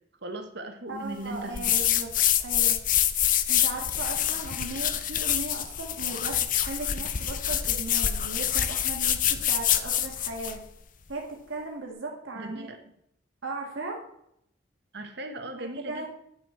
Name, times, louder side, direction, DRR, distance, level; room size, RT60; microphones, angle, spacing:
voice 1, 0.2-1.7 12.3-12.9 14.9-16.1, right 1 dB, 60° right, 6 dB, 1.2 m, -38 dB
voice 2, 0.9-2.1 2.4-2.8 3.5-10.6 11.1-12.7 13.4-14.0 15.6-16.1, right 2 dB, 80° right, -1 dB, 1.7 m, -37 dB
sound 1, 1.5-10.6, left 10 dB, 45° left, 0.6 m, -26 dB
9.7 x 6.4 x 4.4 m, 0.73 s
head